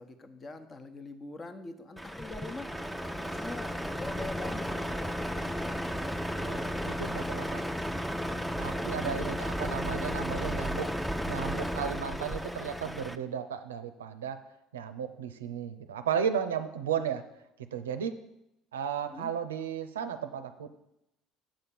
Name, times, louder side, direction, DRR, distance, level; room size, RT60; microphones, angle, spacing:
voice 1, 0.0-2.7 3.2-6.2 6.9-7.5 8.5-9.5 19.0-19.3, left 3 dB, 30° left, 8 dB, 1.0 m, -44 dB
Truck, 2.0-13.2, equal, ahead, 0.6 m, -34 dB
voice 2, 6.4-7.6 8.6-10.9 11.3-14.4 14.7-17.2 17.7-18.1 18.7-20.7, right 7 dB, 90° right, 9 dB, 0.5 m, -34 dB
7.6 x 4.3 x 7.0 m, 0.86 s
hypercardioid pair, 70°, 0 cm